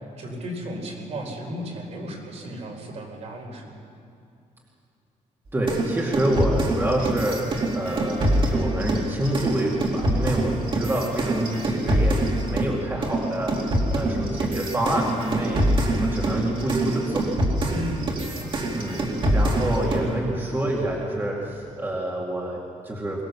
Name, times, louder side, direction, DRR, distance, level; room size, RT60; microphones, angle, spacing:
voice 1, 0.2-3.7 17.7-18.6, equal, 55° right, 1 dB, 4.4 m, -34 dB
voice 2, 5.5-12.2 12.5-15.6 15.9-17.3 18.7-19.1 19.3-23.2, right 1 dB, 15° right, -3 dB, 2.4 m, -27 dB
sound 1, 5.7-12.7 13.0-20.1, right 1 dB, 40° right, 2.7 m, -25 dB
23.0 x 19.5 x 7.0 m, 2.4 s
wide cardioid pair, 165°, 13 cm